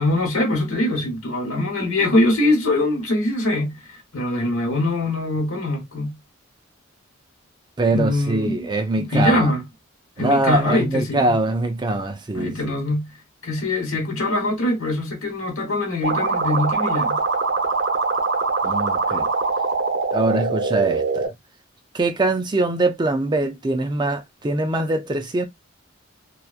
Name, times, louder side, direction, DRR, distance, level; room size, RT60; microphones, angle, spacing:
voice 1, 0.0-3.8 4.1-6.2 7.9-8.7 9.0-9.6 10.2-11.4 12.3-13.1 13.4-17.2, left 1 dB, 80° left, 1.2 m, -22 dB
voice 2, 7.8-9.5 10.2-12.7 18.6-19.3 20.1-21.3 21.9-25.5, right 2 dB, 20° right, 0.4 m, -23 dB
sound 1, 16.0-21.3, right 4 dB, 60° right, 0.8 m, -23 dB
2.9 x 2.1 x 2.4 m
head